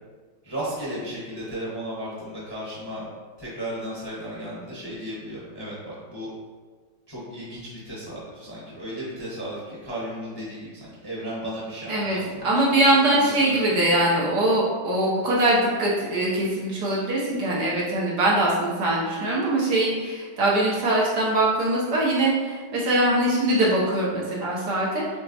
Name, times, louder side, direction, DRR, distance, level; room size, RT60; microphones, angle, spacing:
voice 1, 0.4-3.1 3.4-6.3 7.1-12.7 13.1-13.8, equal, 15° left, -8 dB, 0.8 m, -35 dB
voice 2, 11.9-12.2 12.4-25.2, right 1 dB, 65° right, -5 dB, 1.3 m, -22 dB
6.6 x 2.9 x 2.7 m, 1.5 s
omnidirectional pair, 2.1 m